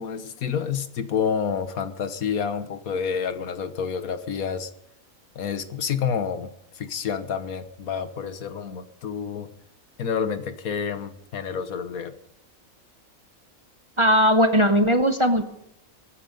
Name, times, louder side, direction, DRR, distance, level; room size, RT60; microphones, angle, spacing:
voice 1, 0.0-4.7 5.3-6.5 6.7-9.5 10.0-12.1, left 7 dB, 80° left, 10 dB, 1.5 m, -29 dB
voice 2, 14.0-15.4, equal, 25° right, 6 dB, 0.9 m, -18 dB
23.0 x 9.4 x 5.4 m, 0.76 s
omnidirectional pair, 1.5 m